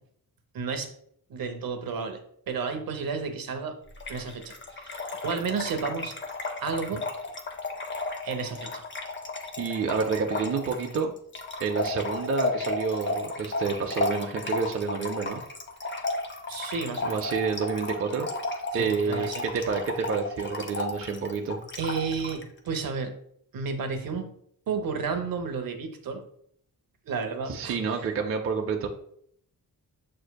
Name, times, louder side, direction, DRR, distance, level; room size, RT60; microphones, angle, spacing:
voice 1, 0.5-0.9 1.3-3.8 4.1-6.1 6.6-7.0 8.2-8.8 16.5-17.2 18.7-19.4 21.8-23.1 23.5-24.3 24.7-26.2 27.1-27.8, right 5 dB, 65° right, 6 dB, 0.7 m, -32 dB
Trickle dribble / Fill (with liquid), 4.0-22.4, left 2 dB, 30° left, 0.5 m, -33 dB
voice 2, 9.6-11.1 11.6-15.4 17.0-18.3 18.7-21.6 27.5-28.9, right 5 dB, 40° right, 2 dB, 0.4 m, -29 dB
7.5 x 2.6 x 2.2 m, 0.66 s
wide cardioid pair, 175°, 36 cm